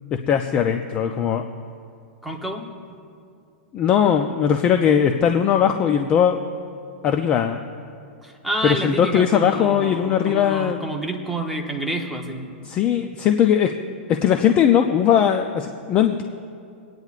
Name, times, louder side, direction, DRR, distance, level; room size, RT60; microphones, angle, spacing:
voice 1, 0.3-1.4 3.7-6.4 7.0-7.6 8.6-10.8 12.6-13.7 14.1-16.2, left 8 dB, 20° left, 6 dB, 0.3 m, -19 dB
voice 2, 2.2-2.7 8.2-12.7, right 1 dB, ahead, -1 dB, 0.8 m, -29 dB
27.0 x 9.3 x 2.4 m, 2.4 s
supercardioid pair, 165°, 6 cm